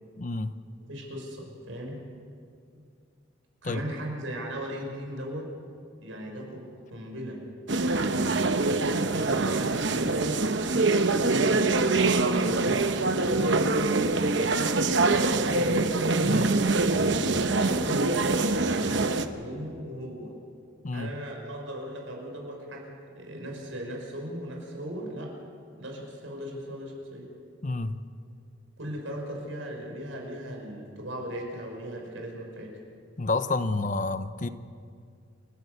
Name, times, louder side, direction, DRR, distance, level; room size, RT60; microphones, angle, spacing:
voice 1, 0.2-0.5 3.6-3.8 16.2-16.5 20.8-21.1 27.6-28.0 33.2-34.5, left 3 dB, 40° left, 12 dB, 0.7 m, -29 dB
voice 2, 0.9-2.0 2.7-2.8 3.6-5.5 6.0-7.4 7.7-8.2 8.7-10.5 11.0-15.9 16.6-18.1 18.5-20.4 20.9-25.3 25.8-27.3 28.8-32.8, equal, 80° right, 0 dB, 5.8 m, -38 dB
sound 1, 7.7-19.2, right 3 dB, 65° right, 1.0 m, -24 dB
29.0 x 12.5 x 8.1 m, 2.3 s
head